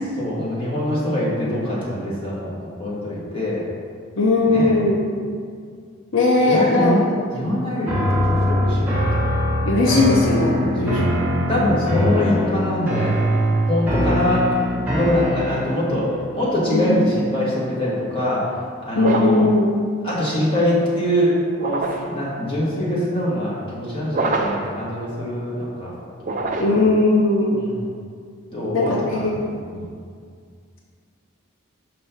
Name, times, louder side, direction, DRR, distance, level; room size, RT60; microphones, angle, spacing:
voice 1, 0.2-3.6 4.4-4.8 6.4-7.0 7.3-9.0 10.5-11.2 11.5-13.2 13.7-14.5 14.7-18.5 18.8-19.5 20.0-21.3 21.6-25.9 26.4-26.8 27.5-27.9 28.5-29.8, equal, 25° left, -7 dB, 1.4 m, -24 dB
voice 2, 4.2-5.0 6.1-6.9 9.6-11.1 16.7-17.0 19.0-19.7 26.6-27.6 28.7-29.3, left 2 dB, 70° left, -2 dB, 0.7 m, -18 dB
sound 1, 7.9-15.9, equal, 10° right, 1.1 m, -22 dB
sound 2, 19.0-19.5 21.5-22.2 24.1-24.7 26.2-26.9, right 2 dB, 40° right, 0.4 m, -25 dB
5.3 x 3.4 x 5.7 m, 2.1 s
head